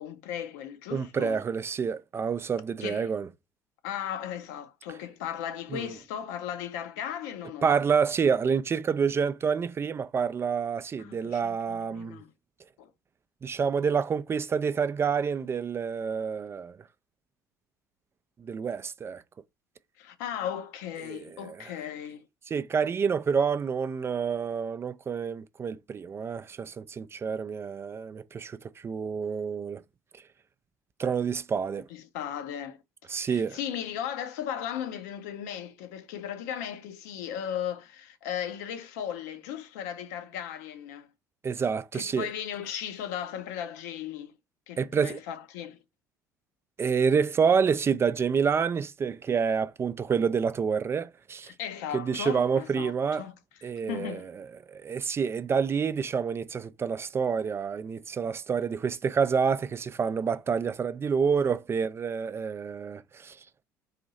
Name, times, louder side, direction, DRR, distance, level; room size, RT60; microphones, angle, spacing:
voice 1, 0.0-1.4 2.8-3.1 3.8-7.7 11.0-12.3 12.8-12.9 20.0-22.2 31.9-32.8 33.1-41.1 41.9-44.3 44.7-45.8 51.5-52.9 53.2-53.4 53.6-54.3, left 9 dB, 65° left, 0.6 m, -36 dB
voice 2, 0.9-3.3 5.7-5.9 7.6-12.2 13.4-16.8 18.4-19.2 21.0-21.7 22.5-29.8 30.1-30.2 31.0-31.9 33.1-33.6 41.4-42.3 44.8-45.2 46.8-51.5 51.9-53.3 53.6-63.4, right 6 dB, 25° right, 0.3 m, -28 dB
4.1 x 2.6 x 4.1 m
figure-of-eight pair, 55°, 10 cm